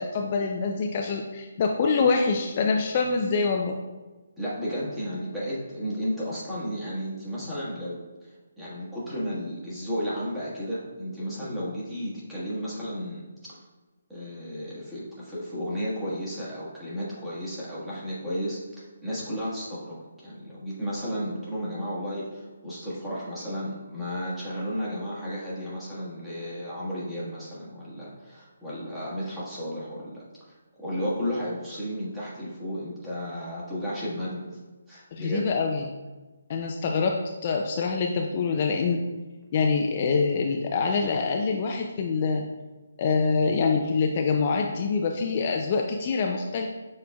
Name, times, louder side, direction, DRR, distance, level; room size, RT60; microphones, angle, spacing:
voice 1, 0.0-3.8 35.1-35.8 36.5-39.0 39.5-42.4 43.0-46.7, left 4 dB, 35° left, 2 dB, 0.4 m, -25 dB
voice 2, 4.4-13.3 14.1-34.6 34.9-35.5, equal, 5° right, -10 dB, 1.4 m, -33 dB
6.9 x 3.2 x 2.3 m, 1.2 s
hypercardioid pair, 155°, 0 cm